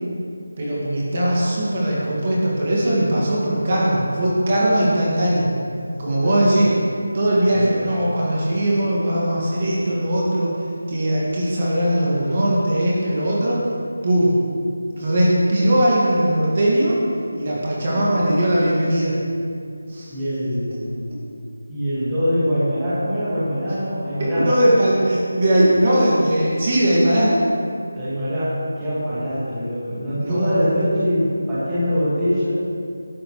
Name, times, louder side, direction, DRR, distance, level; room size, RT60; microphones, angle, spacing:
voice 1, 0.6-5.5 6.0-6.8 7.1-13.6 14.0-14.4 14.9-17.0 17.3-19.2 19.9-20.1 24.2-27.3 30.2-30.5, right 1 dB, 25° right, -6 dB, 1.9 m, -19 dB
voice 2, 6.2-6.7 7.5-7.9 17.9-18.0 20.1-21.0 21.7-24.5 28.0-32.5, equal, 5° right, -14 dB, 1.9 m, -23 dB
14.5 x 12.0 x 3.2 m, 2.4 s
figure-of-eight pair, 180°, 0 cm